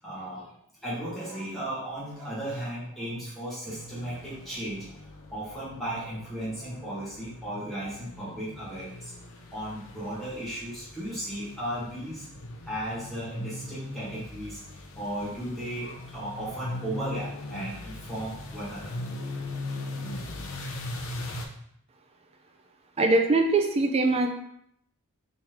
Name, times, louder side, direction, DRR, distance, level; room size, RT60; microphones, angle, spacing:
voice 1, 0.0-5.0 5.3-9.1 9.5-12.2 12.7-14.6 14.9-19.0, right 1 dB, ahead, -10 dB, 1.4 m, -35 dB
sound 1, 3.7-21.5, left 2 dB, 60° left, 0.5 m, -40 dB
voice 2, 23.0-24.3, right 2 dB, 30° right, 4 dB, 0.4 m, -22 dB
3.5 x 3.2 x 2.9 m, 0.72 s
head